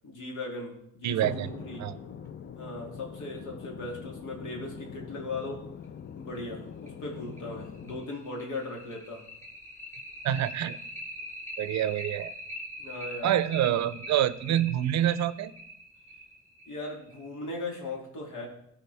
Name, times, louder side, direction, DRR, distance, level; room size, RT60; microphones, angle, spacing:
voice 1, 0.0-1.2 1.6-1.9 2.5-5.6 6.2-9.2 12.8-13.3 16.7-18.5, left 2 dB, 80° left, 0 dB, 2.6 m, -38 dB
voice 2, 1.0-1.5 1.8-2.0 10.2-10.8 11.6-12.3 13.2-15.5, right 11 dB, 65° right, 16 dB, 0.5 m, -27 dB
sound 1, 1.2-4.4 5.8-5.9 6.3-6.4 6.9-7.0 7.4-17.4, equal, 10° left, 3.5 m, -43 dB
sound 2, 1.4-8.1, left 8 dB, 40° left, 0.5 m, -44 dB
15.0 x 4.9 x 3.4 m, 0.73 s
cardioid pair, 90°, 30 cm